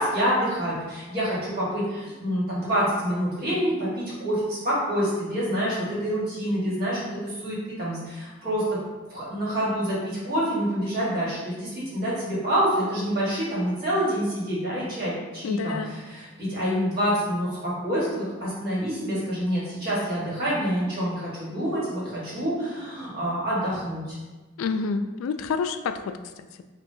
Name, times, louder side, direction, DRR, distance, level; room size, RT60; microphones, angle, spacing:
voice 1, 0.0-8.8 9.1-15.8 16.1-24.0, equal, 45° right, -8 dB, 1.5 m, -27 dB
voice 2, 15.4-16.0 24.6-26.6, left 5 dB, 85° left, 10 dB, 0.3 m, -29 dB
6.0 x 2.3 x 2.7 m, 1.3 s
head